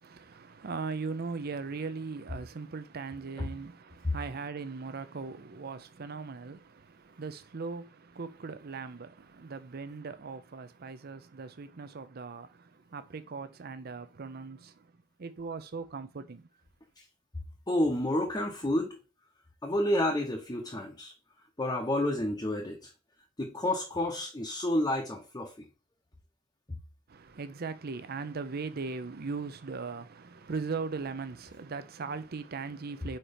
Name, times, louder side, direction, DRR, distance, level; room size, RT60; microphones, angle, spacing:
voice 1, 0.0-14.9 15.2-16.5 27.1-33.2, right 4 dB, 50° right, 0.6 m, -39 dB
voice 2, 17.7-19.0 19.6-21.1 21.6-22.9 23.4-25.5, left 1 dB, 20° left, 0.8 m, -30 dB
4.4 x 4.3 x 5.1 m
head